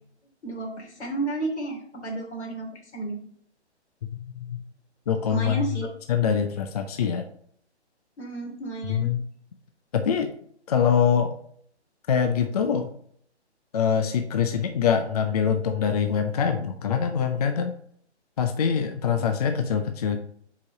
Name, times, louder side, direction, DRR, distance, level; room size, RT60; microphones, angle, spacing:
voice 1, 0.4-3.2 5.3-5.9 8.2-9.1, right 2 dB, 75° left, 0 dB, 2.9 m, -32 dB
voice 2, 5.1-5.6 6.1-7.3 8.9-9.2 9.9-10.3 10.7-11.4 12.1-12.9 13.7-17.7 18.4-20.2, left 7 dB, 35° left, 7 dB, 0.5 m, -24 dB
5.6 x 4.9 x 5.1 m, 0.63 s
hypercardioid pair, 145°, 34 cm